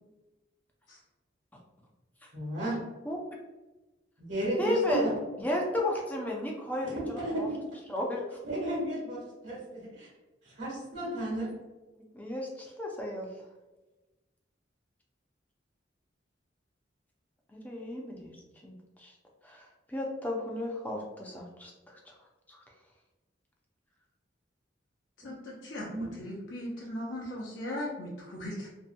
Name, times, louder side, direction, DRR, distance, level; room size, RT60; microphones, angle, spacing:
voice 1, 2.3-2.8 4.2-5.1 6.8-7.6 8.4-10.1 10.6-11.5 25.2-25.3 25.9-26.0, right 1 dB, 70° right, -7 dB, 1.1 m, -33 dB
voice 2, 4.6-5.1 5.4-7.5 7.9-8.4 11.4-11.5 12.1-13.3 17.5-18.4 18.6-19.1 19.4-22.1 22.5-22.6, left 1 dB, 10° left, -1 dB, 0.4 m, -34 dB
voice 3, 25.2-25.9 26.2-28.7, left 1 dB, 80° left, -5 dB, 0.6 m, -38 dB
2.7 x 2.1 x 2.5 m, 1.1 s
head